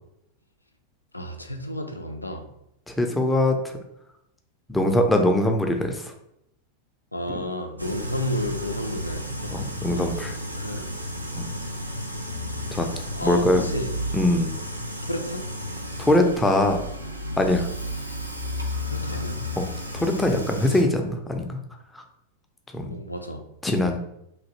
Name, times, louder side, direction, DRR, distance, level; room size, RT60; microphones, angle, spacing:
voice 1, 1.1-2.5 7.1-9.5 10.6-10.9 13.1-14.0 15.0-15.5 18.8-19.4 22.9-23.4, left 1 dB, 85° left, 5 dB, 0.3 m, -31 dB
voice 2, 2.9-3.6 4.7-6.0 7.3-7.4 9.5-10.4 11.4-11.5 12.7-12.9 13.2-13.7 14.1-14.5 16.0-16.8 17.4-17.7 19.6-19.7 19.9-21.5 21.9-22.0 22.7-22.9 23.6-24.0, left 1 dB, 10° left, 4 dB, 0.5 m, -22 dB
sound 1, 7.8-20.8, equal, 85° right, 0.4 m, -32 dB
3.2 x 2.5 x 2.8 m, 0.79 s
figure-of-eight pair, 90°, 0 cm